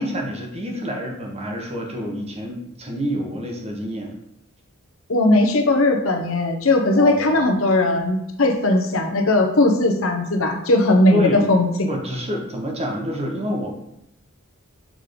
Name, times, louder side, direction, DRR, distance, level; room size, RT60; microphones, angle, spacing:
voice 1, 0.0-4.1 6.9-7.4 11.1-11.5 11.9-13.8, equal, 30° right, 0 dB, 1.2 m, -28 dB
voice 2, 5.1-11.9, left 2 dB, 70° left, 3 dB, 1.0 m, -18 dB
6.4 x 3.8 x 5.1 m, 0.80 s
head